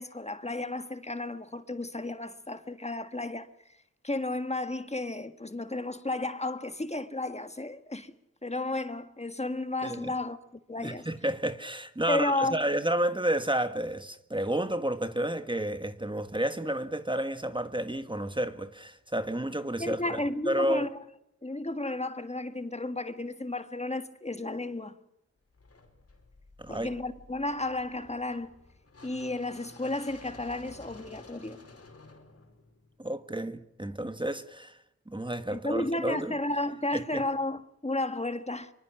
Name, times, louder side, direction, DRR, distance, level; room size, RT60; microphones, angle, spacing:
voice 1, 0.0-3.8 4.0-8.1 8.4-10.4 10.7-11.1 12.1-12.6 19.8-21.0 21.4-25.0 26.7-28.5 29.0-31.6 35.5-38.7, left 2 dB, 25° left, 1.7 m, -33 dB
voice 2, 9.8-10.1 10.8-20.2 20.5-20.9 26.6-26.9 33.0-34.8 35.1-36.3 36.9-37.2, right 1 dB, 15° right, 1.6 m, -31 dB
sound 1, 25.5-33.6, left 2 dB, 55° left, 5.0 m, -53 dB
24.5 x 24.0 x 6.1 m
cardioid pair, 55°, 29 cm